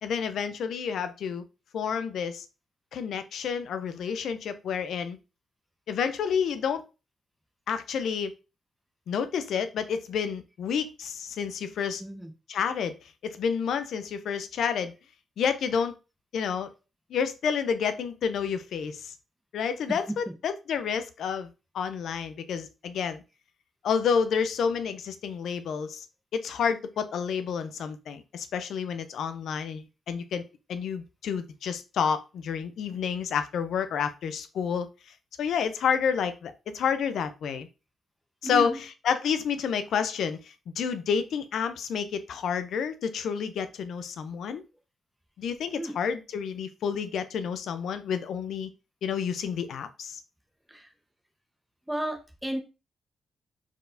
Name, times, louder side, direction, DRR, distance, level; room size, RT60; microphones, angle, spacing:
voice 1, 0.0-1.4 1.7-2.5 2.9-5.2 5.9-6.8 7.7-8.3 9.1-12.0 12.5-12.9 13.2-14.9 15.4-15.9 16.3-16.7 17.1-19.1 19.5-21.5 21.7-23.2 23.8-26.1 26.3-30.4 30.7-34.9 35.4-37.7 38.4-38.8 39.0-44.6 45.4-48.7 49.0-50.2, left 7 dB, 75° left, 0.5 m, -29 dB
voice 2, 12.0-12.3 19.9-20.0 38.4-38.8 45.7-46.0 50.7-50.9 51.9-52.6, right 1 dB, 10° right, 1.2 m, -33 dB
4.5 x 4.0 x 2.6 m
supercardioid pair, 60°, 0 cm